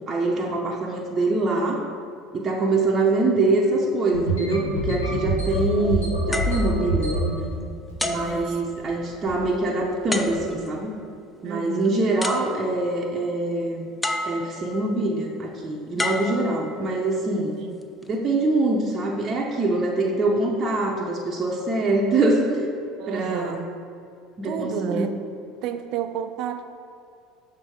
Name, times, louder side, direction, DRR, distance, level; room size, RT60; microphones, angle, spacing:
voice 1, 0.1-1.8 2.3-7.2 8.0-11.0 11.4-13.9 14.2-17.5 18.1-22.7 23.1-23.6 24.4-25.1, right 2 dB, 35° right, -2 dB, 0.8 m, -24 dB
sound 1, 4.1-7.4 7.9-8.4 8.6-8.9 9.3-9.5 10.1-10.4, right 1 dB, 90° left, 1.0 m, -26 dB
sound 2, 6.3-7.5 8.0-9.2 10.1-10.8 11.8-11.9 12.2-13.0 14.0-14.8 16.0-17.1 17.8-18.1, left 1 dB, 10° left, 0.5 m, -31 dB
voice 2, 8.1-8.6 11.4-11.9 17.6-17.8 23.0-23.6 24.4-25.1 25.6-26.6, right 9 dB, 55° right, 8 dB, 0.4 m, -31 dB
6.2 x 3.7 x 5.1 m, 2.5 s
hypercardioid pair, 70°, 0 cm